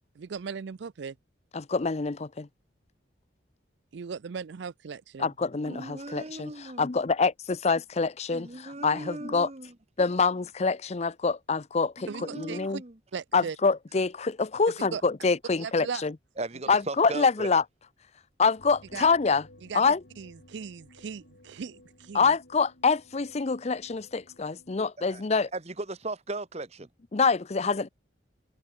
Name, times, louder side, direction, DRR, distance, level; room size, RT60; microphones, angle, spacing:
voice 1, 0.2-1.2 3.9-5.3 12.1-12.6 13.1-13.6 14.9-15.0 15.6-16.0 18.9-19.1 19.7-19.8 20.2-22.3, right 6 dB, 65° right, 0.4 m, -38 dB
voice 2, 1.5-2.5 5.2-9.5 10.0-12.8 13.3-16.2 16.7-17.6 18.4-19.5 19.7-20.0 22.1-25.5 27.1-27.9, left 4 dB, 35° left, 0.6 m, -26 dB
voice 3, 5.6-6.9 8.3-9.7 12.0-13.0 16.4-17.5 25.1-25.2 25.5-26.9, right 2 dB, 35° right, 1.4 m, -37 dB
sound 1, 18.6-24.9, left 1 dB, 70° left, 5.2 m, -56 dB
head